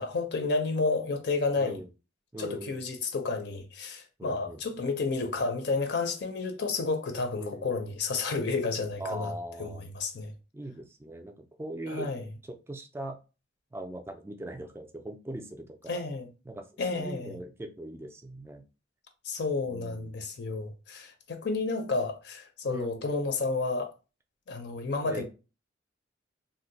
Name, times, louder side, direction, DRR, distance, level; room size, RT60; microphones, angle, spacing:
voice 1, 0.0-1.8 2.4-9.3 9.6-10.3 11.9-12.2 15.9-16.3 16.8-17.4 19.2-23.9 24.5-25.2, left 3 dB, 60° left, 0.5 m, -31 dB
voice 2, 1.6-1.9 2.3-2.9 4.2-4.6 7.4-7.7 9.0-9.8 10.5-12.1 12.5-13.2 13.7-16.0 16.5-16.6 16.9-18.6 19.6-20.2 22.6-23.1 25.0-25.2, right 1 dB, 10° right, 0.3 m, -40 dB
2.7 x 2.0 x 3.9 m
head